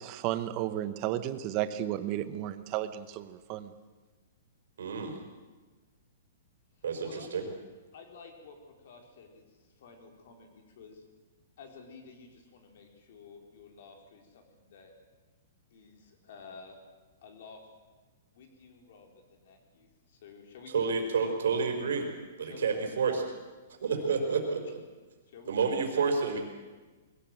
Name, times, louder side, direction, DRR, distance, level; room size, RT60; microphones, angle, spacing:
voice 1, 0.0-3.7, right 12 dB, 30° right, 12 dB, 1.0 m, -33 dB
voice 2, 4.8-5.2 6.8-7.4 20.7-22.1 22.4-23.2 23.8-24.6 25.5-26.4, right 5 dB, 80° right, 3 dB, 4.7 m, -29 dB
voice 3, 7.9-11.0 11.6-14.9 15.7-16.8 17.2-17.6 18.3-20.7 22.4-22.7 24.0-24.2 25.3-25.9, left 5 dB, 55° left, 3 dB, 4.2 m, -52 dB
21.5 x 17.0 x 7.9 m, 1.3 s
hypercardioid pair, 165°, 0 cm